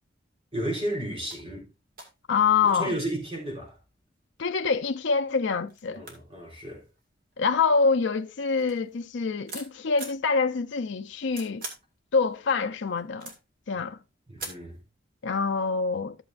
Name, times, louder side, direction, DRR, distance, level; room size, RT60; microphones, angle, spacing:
voice 1, 0.5-1.7 2.6-3.8 5.9-6.8 14.3-14.8, right 1 dB, 30° right, 3.6 m, -33 dB
sound 1, 1.0-1.1 1.3-1.4 2.0-2.9 3.6-4.2 4.9-5.0 5.3-5.4 5.7-7.7 8.2-10.2 10.9-11.9 12.3-13.6 14.4-14.8, right 3 dB, 50° right, 2.1 m, -43 dB
voice 2, 2.3-2.9 4.4-6.0 7.4-11.6 12.1-13.3 13.7-14.0 15.2-16.2, left 5 dB, 75° left, 0.5 m, -25 dB
14.0 x 6.9 x 2.5 m
head